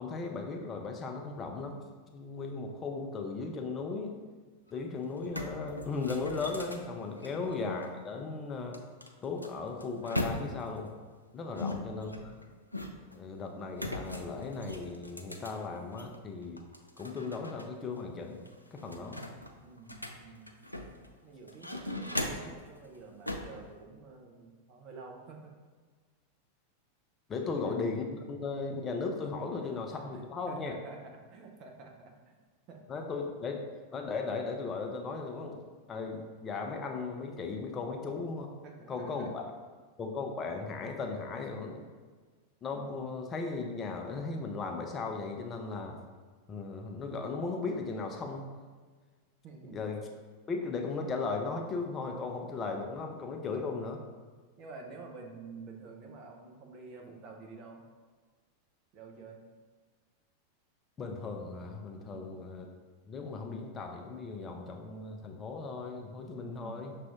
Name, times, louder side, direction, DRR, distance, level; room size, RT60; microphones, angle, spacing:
voice 1, 0.0-1.8 2.1-4.2 4.7-8.8 9.2-10.9 11.3-12.3 13.1-16.6 17.0-18.4 18.7-19.2 27.3-30.7 32.9-33.6 33.9-35.6 35.9-38.5 38.9-39.4 40.0-41.8 42.6-46.0 46.5-48.5 49.6-50.0 50.5-54.0 61.0-62.7 63.1-66.9, left 4 dB, 25° left, 2 dB, 0.4 m, -37 dB
sound 1, 4.7-4.8 5.1-7.9 8.7-10.8 11.6-13.2 13.7-16.2 16.6-17.7 18.0-18.1 18.5-21.1 21.5-22.6 23.3-23.6, left 1 dB, 90° left, 0.3 m, -39 dB
voice 2, 11.5-11.9 18.7-19.2 19.6-20.5 21.2-25.5 27.4-27.8 29.4-29.7 30.1-32.3 32.7-32.8 33.3-33.5 38.6-39.3 49.4-49.8 54.6-57.8 58.9-59.4 62.0-62.3 66.3-67.0, right 4 dB, 40° right, 2 dB, 0.7 m, -49 dB
6.0 x 2.5 x 3.5 m, 1.4 s
figure-of-eight pair, 90°, 0 cm